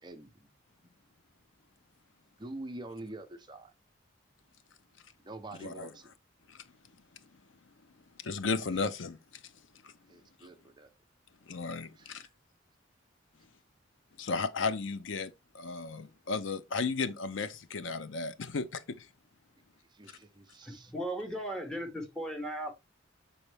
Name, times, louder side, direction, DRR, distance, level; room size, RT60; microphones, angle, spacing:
voice 1, 0.0-0.5 2.4-3.7 5.2-6.1 10.1-10.9 11.9-12.3 19.9-20.9, right 2 dB, 20° right, 0.7 m, -46 dB
voice 2, 8.2-9.2 9.8-9.9 11.5-12.2 14.2-19.1, left 4 dB, 70° left, 0.6 m, -34 dB
voice 3, 20.6-22.7, right 1 dB, 5° left, 1.2 m, -37 dB
6.9 x 4.2 x 3.3 m
head